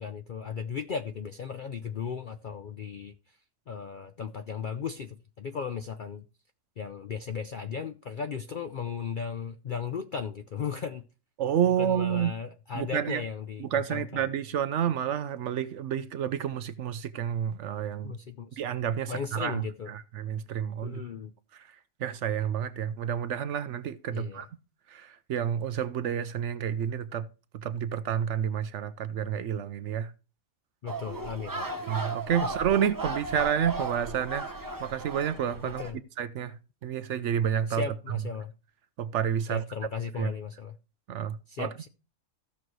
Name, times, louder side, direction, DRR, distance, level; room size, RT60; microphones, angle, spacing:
voice 1, 0.0-3.1 3.7-6.2 6.8-11.0 11.6-14.2 18.0-18.6 19.1-19.9 20.8-21.3 24.1-24.4 30.8-31.9 35.6-36.0 37.7-38.5 39.5-40.8 41.5-41.9, left 6 dB, 60° left, 0.5 m, -36 dB
voice 2, 11.4-12.3 12.7-13.2 13.6-18.1 18.6-21.0 21.5-21.7 22.0-24.5 24.9-27.2 27.5-30.1 31.9-34.5 34.8-35.8 36.2-38.2 39.0-39.6 40.2-40.3 41.1-41.7, right 9 dB, 65° right, 0.8 m, -30 dB
sound 1, 30.9-35.9, right 3 dB, 20° right, 0.7 m, -35 dB
15.0 x 6.3 x 3.1 m
omnidirectional pair, 1.5 m